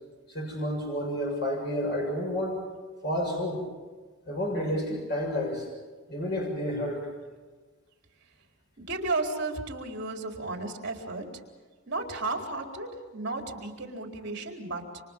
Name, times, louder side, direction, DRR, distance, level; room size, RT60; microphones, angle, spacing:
voice 1, 0.3-2.6 3.0-3.6 4.3-5.7 6.1-7.1, equal, 50° left, 0 dB, 6.7 m, -30 dB
voice 2, 8.8-11.2 11.9-14.8, right 3 dB, 50° right, 2 dB, 4.2 m, -33 dB
29.5 x 27.0 x 5.5 m, 1.4 s
head